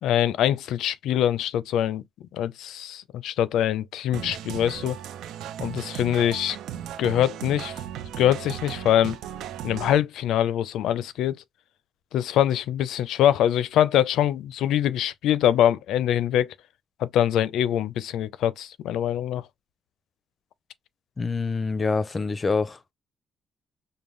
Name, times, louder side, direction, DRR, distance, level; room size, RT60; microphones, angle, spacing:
voice 1, 0.0-2.0 2.3-5.0 5.6-6.6 7.0-7.8 8.2-9.2 9.6-11.4 12.1-16.5 17.0-19.5, left 11 dB, 85° left, 0.4 m, -24 dB
sound 1, 4.1-10.0, right 10 dB, 85° right, 0.5 m, -36 dB
voice 2, 21.2-22.8, left 4 dB, 25° left, 0.5 m, -26 dB
5.3 x 2.2 x 3.1 m
cardioid pair, 135°, 0 cm